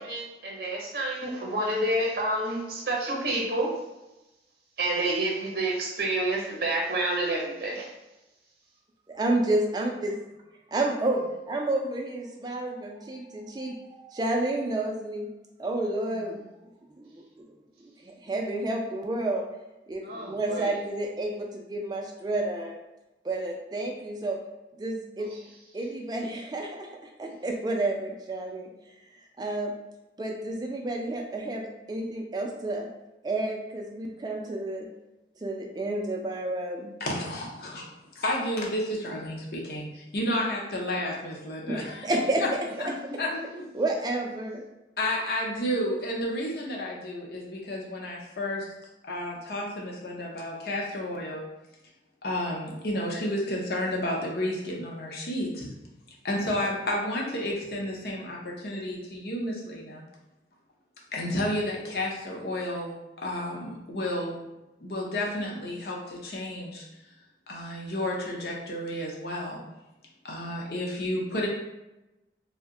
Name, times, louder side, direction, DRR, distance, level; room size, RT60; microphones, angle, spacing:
voice 1, 0.0-3.7 4.8-7.9 20.0-20.8 43.0-43.6, right 1 dB, 55° right, -1 dB, 0.7 m, -29 dB
voice 2, 9.1-9.9 10.7-11.2 11.5-15.3 15.6-16.4 17.0-17.5 18.0-19.5 19.9-22.7 23.2-24.4 24.8-25.3 25.7-26.9 27.2-28.7 29.4-29.7 30.2-32.9 33.2-34.9 35.4-36.9 41.7-42.4 43.7-44.7, right 2 dB, 25° right, 1 dB, 0.3 m, -30 dB
voice 3, 37.0-42.5 42.8-42.9 43.2-43.3 45.0-48.7 49.0-51.4 52.2-55.7 56.2-60.0 61.1-62.9 63.2-64.4 64.8-66.8 67.5-69.6 70.2-71.5, left 1 dB, 60° left, -2 dB, 0.6 m, -31 dB
2.7 x 2.1 x 3.6 m, 0.99 s
head